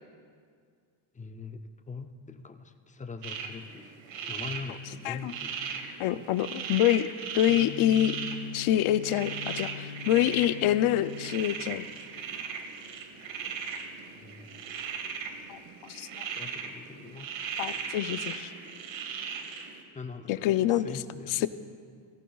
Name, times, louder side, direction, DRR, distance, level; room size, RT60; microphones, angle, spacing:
voice 1, 1.1-3.9 4.3-5.5 14.1-14.6 16.2-17.4 19.9-21.5, left 4 dB, 20° left, 7 dB, 0.4 m, -42 dB
sound 1, 3.2-19.8, right 6 dB, 70° right, 1.2 m, -38 dB
voice 2, 6.0-7.1 7.3-8.2 8.5-11.9 15.5-16.3 17.6-18.5 20.3-20.9, left 12 dB, 85° left, 14 dB, 0.6 m, -26 dB
Gong, 7.5-15.5, left 8 dB, 50° left, 2.4 m, -44 dB
17.5 x 15.5 x 2.3 m, 2.1 s
cardioid pair, 145°, 48 cm